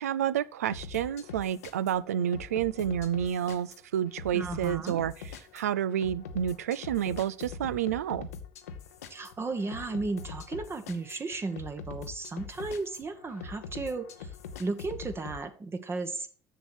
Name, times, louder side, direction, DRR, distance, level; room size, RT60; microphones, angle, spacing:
voice 1, 0.0-5.1 5.5-8.3, right 10 dB, 90° right, 0.4 m, -29 dB
sound 1, 0.7-15.4, left 5 dB, 85° left, 0.8 m, -43 dB
voice 2, 4.3-5.0 9.1-14.3 14.6-16.3, right 3 dB, 30° right, 1.2 m, -34 dB
6.9 x 6.5 x 6.0 m
hypercardioid pair, 65°, 8 cm